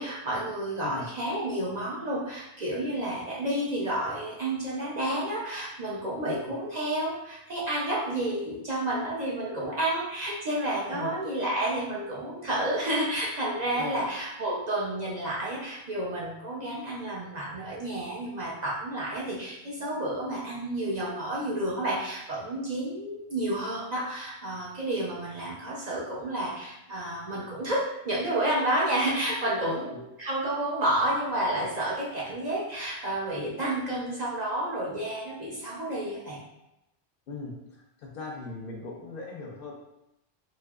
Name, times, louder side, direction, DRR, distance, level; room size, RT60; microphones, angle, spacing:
voice 1, 0.0-36.4, right 1 dB, 50° right, -5 dB, 0.6 m, -30 dB
voice 2, 37.3-39.7, left 3 dB, 65° left, 0 dB, 0.7 m, -39 dB
3.3 x 2.7 x 2.3 m, 0.86 s
omnidirectional pair, 1.1 m